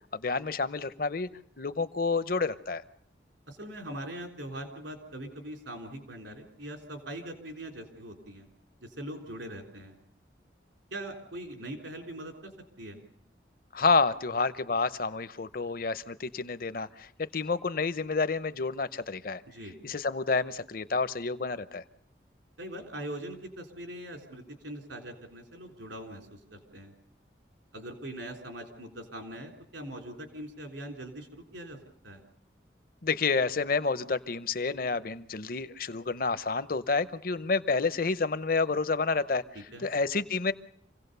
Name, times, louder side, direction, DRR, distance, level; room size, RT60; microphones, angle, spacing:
voice 1, 0.1-1.3 1.6-2.8 13.7-19.4 19.8-21.8 33.0-39.4 39.8-40.5, left 4 dB, 50° left, 14 dB, 0.8 m, -29 dB
voice 2, 3.5-8.5 8.8-9.9 10.9-12.5 12.8-13.0 19.5-19.7 22.6-26.9 27.7-31.8 32.0-32.2 39.5-39.9, right 1 dB, 85° right, 4 dB, 3.7 m, -42 dB
27.0 x 17.0 x 6.8 m, 0.70 s
head